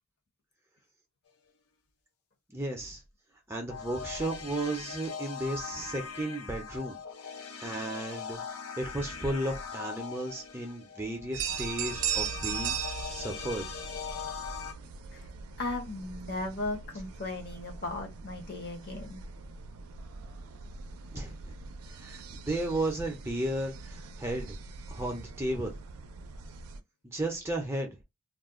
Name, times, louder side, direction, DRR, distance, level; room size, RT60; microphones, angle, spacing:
voice 1, 2.5-3.0 3.5-7.0 7.6-8.4 8.8-12.8 13.1-13.7 21.1-21.5 22.0-24.6 24.9-25.7 27.0-28.0, right 1 dB, 10° right, 0.5 m, -34 dB
sound 1, 3.7-14.7, left 6 dB, 85° left, 0.5 m, -41 dB
sound 2, 11.3-26.8, right 7 dB, 80° right, 0.4 m, -40 dB
voice 2, 15.6-19.2, left 2 dB, 45° left, 0.7 m, -36 dB
2.4 x 2.2 x 3.5 m
head